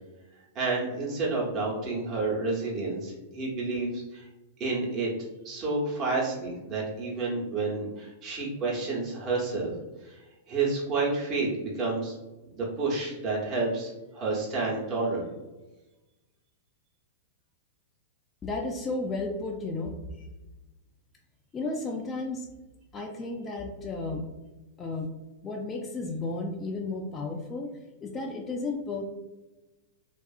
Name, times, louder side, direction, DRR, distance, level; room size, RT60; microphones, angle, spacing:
voice 1, 0.5-4.3 4.6-5.1 5.4-9.7 10.0-12.1 12.5-15.3, right 3 dB, 35° right, -5 dB, 0.9 m, -30 dB
voice 2, 18.4-20.3 21.5-22.5 22.9-24.2 24.8-25.1 25.4-29.0, left 3 dB, 20° left, 0 dB, 0.3 m, -33 dB
2.6 x 2.4 x 2.3 m, 1.1 s
hypercardioid pair, 105°, 0 cm